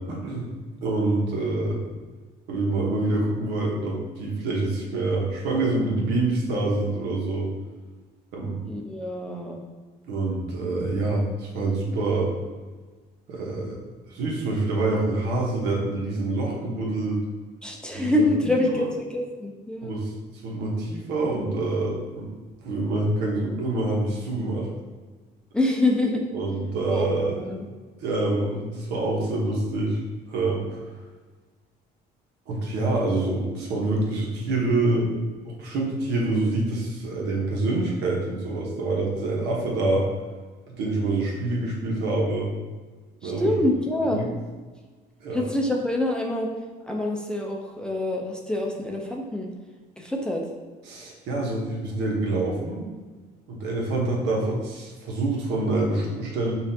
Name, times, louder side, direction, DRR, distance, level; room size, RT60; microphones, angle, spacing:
voice 1, 0.1-0.5 0.8-1.8 2.5-7.5 8.3-8.6 10.0-12.3 13.3-13.8 14.1-17.2 18.0-18.3 19.8-20.1 20.4-22.3 22.6-24.7 26.3-27.3 28.0-30.0 30.3-30.8 32.5-35.1 35.4-40.1 40.8-42.5 43.2-43.6 44.1-44.2 45.2-45.4 50.9-52.8 53.5-56.5, right 2 dB, 85° right, -2 dB, 1.0 m, -26 dB
voice 2, 8.6-9.6 17.6-20.0 25.5-26.2 26.9-27.7 43.2-44.2 45.3-46.5 46.8-49.5 50.0-50.5, left 1 dB, 5° left, 0 dB, 0.5 m, -26 dB
5.6 x 2.5 x 2.7 m, 1.3 s
cardioid pair, 110°, 17 cm